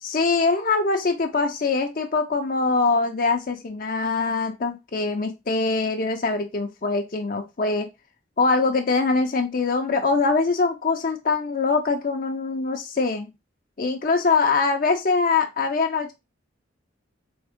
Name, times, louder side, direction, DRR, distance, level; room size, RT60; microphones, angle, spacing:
voice 1, 0.0-7.9 8.4-13.3 13.8-16.1, left 4 dB, 45° left, 5 dB, 0.5 m, -23 dB
3.5 x 3.5 x 3.5 m, 0.23 s
head